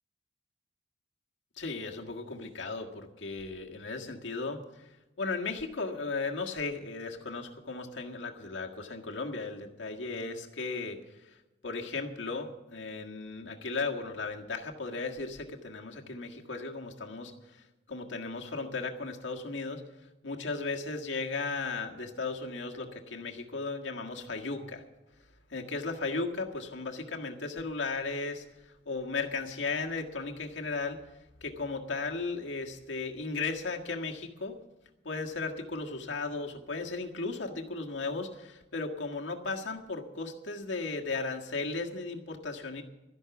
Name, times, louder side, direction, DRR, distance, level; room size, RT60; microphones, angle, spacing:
voice 1, 1.6-4.8 5.2-11.4 11.6-19.8 20.2-24.8 25.5-31.0 31.4-34.6 35.0-42.8, left 3 dB, 85° left, 2 dB, 1.7 m, -36 dB
13.0 x 11.0 x 7.0 m, 1.0 s
head